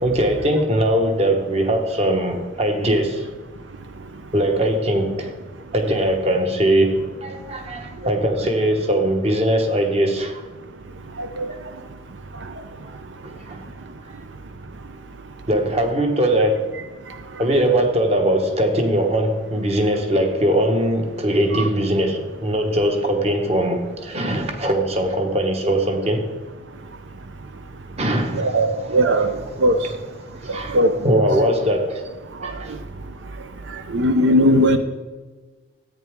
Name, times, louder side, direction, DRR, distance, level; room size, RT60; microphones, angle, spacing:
voice 1, 0.0-3.3 4.3-5.3 5.7-10.4 11.5-11.6 13.4-13.6 15.5-16.6 17.4-26.3 28.0-28.6 29.0-29.1 29.6-29.7 30.3-30.8 31.0-32.0 32.4-32.8, right 1 dB, 35° right, 1.2 m, -21 dB
voice 2, 28.4-29.3 29.6-29.8 30.7-31.2 33.9-34.8, equal, 75° right, 0.6 m, -17 dB
13.5 x 8.9 x 3.6 m
head